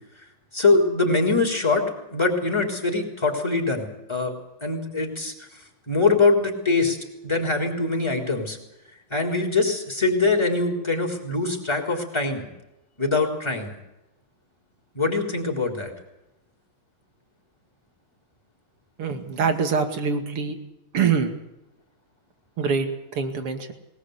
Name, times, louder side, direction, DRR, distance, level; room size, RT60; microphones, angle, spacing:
voice 1, 0.5-4.3 4.6-5.5 5.9-7.0 7.2-8.6 9.1-12.4 13.0-13.7 14.9-15.9, left 3 dB, 10° left, 1 dB, 4.0 m, -23 dB
voice 2, 19.0-20.6 20.9-21.3 22.6-23.7, right 5 dB, 90° right, 7 dB, 3.3 m, -24 dB
21.5 x 19.0 x 8.3 m, 0.93 s
omnidirectional pair, 2.4 m